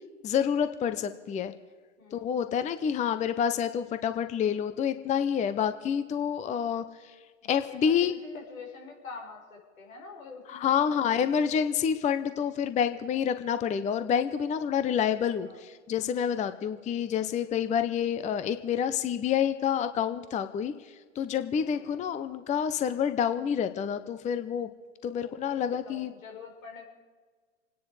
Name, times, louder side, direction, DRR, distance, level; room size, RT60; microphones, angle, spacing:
voice 1, 0.2-1.5 2.1-7.1 7.5-8.1 10.5-24.7 25.0-26.1, left 8 dB, 20° left, 11 dB, 0.7 m, -28 dB
voice 2, 7.4-11.4 15.4-15.6 21.7-22.0 25.2-26.8, left 4 dB, 80° left, 0 dB, 5.1 m, -46 dB
27.0 x 10.0 x 4.8 m, 1.5 s
hypercardioid pair, 110°, 40 cm